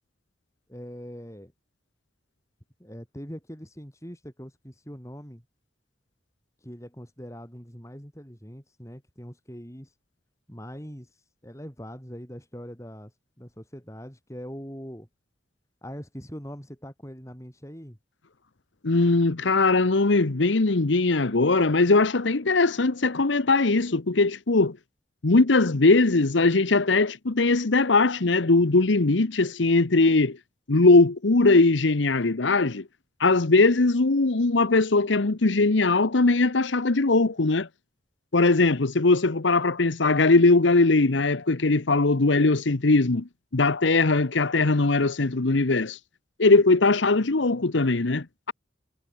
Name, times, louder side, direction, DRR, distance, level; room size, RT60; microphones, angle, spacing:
voice 1, 0.7-1.5 2.8-5.4 6.6-9.9 10.5-11.1 11.4-13.1 13.4-15.1 15.8-18.0, equal, 15° left, 7.0 m, -42 dB
voice 2, 18.8-24.8 25.2-30.4 30.7-32.8 33.2-37.7 38.3-46.0 46.4-48.5, left 3 dB, 85° left, 1.0 m, -20 dB
head